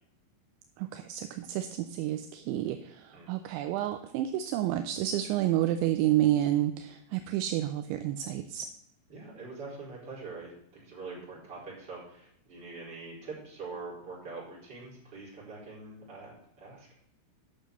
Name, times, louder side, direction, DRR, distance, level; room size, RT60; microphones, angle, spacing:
voice 1, 0.8-8.7, right 13 dB, 85° right, 8 dB, 2.7 m, -30 dB
voice 2, 9.1-16.9, right 3 dB, 20° right, -6 dB, 4.8 m, -44 dB
10.5 x 6.2 x 6.7 m, 0.72 s
omnidirectional pair, 5.9 m